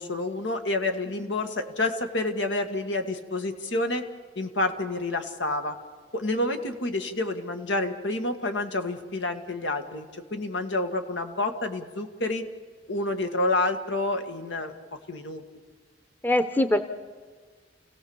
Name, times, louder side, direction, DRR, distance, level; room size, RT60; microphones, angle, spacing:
voice 1, 0.0-4.1 4.4-5.8 6.1-12.4 12.9-14.7 15.1-15.4, left 2 dB, 85° left, 6 dB, 1.8 m, -29 dB
voice 2, 16.2-16.8, left 1 dB, 10° left, 9 dB, 0.8 m, -23 dB
29.5 x 17.0 x 7.2 m, 1.5 s
head